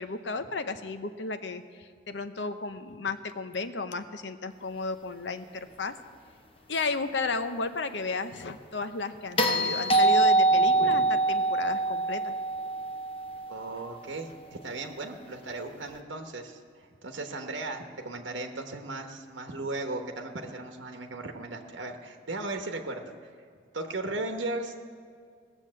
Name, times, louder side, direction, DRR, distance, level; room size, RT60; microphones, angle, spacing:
voice 1, 0.0-5.9 6.7-12.3, left 3 dB, 75° left, 9 dB, 0.7 m, -33 dB
sound 1, 9.4-13.6 15.9-16.0, right 2 dB, 30° left, 0.9 m, -24 dB
voice 2, 10.6-11.0 13.5-16.6 17.0-23.3 23.7-24.7, right 2 dB, 85° right, 4 dB, 1.1 m, -36 dB
17.5 x 7.2 x 7.5 m, 2.1 s
head